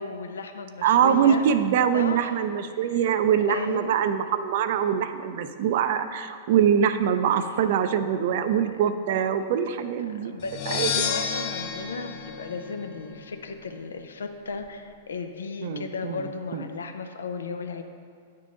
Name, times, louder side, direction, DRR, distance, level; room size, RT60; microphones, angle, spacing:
voice 1, 0.0-1.5 1.9-2.3 2.7-3.2 3.5-4.0 10.2-17.8, left 4 dB, 85° left, 6 dB, 0.5 m, -35 dB
voice 2, 0.8-10.3 10.7-10.9 15.6-16.2 16.5-16.6, right 8 dB, 60° right, 10 dB, 0.4 m, -23 dB
sound 1, 10.4-13.3, left 6 dB, 40° left, 0.7 m, -31 dB
9.0 x 3.8 x 3.7 m, 2.2 s
hypercardioid pair, 115°, 0 cm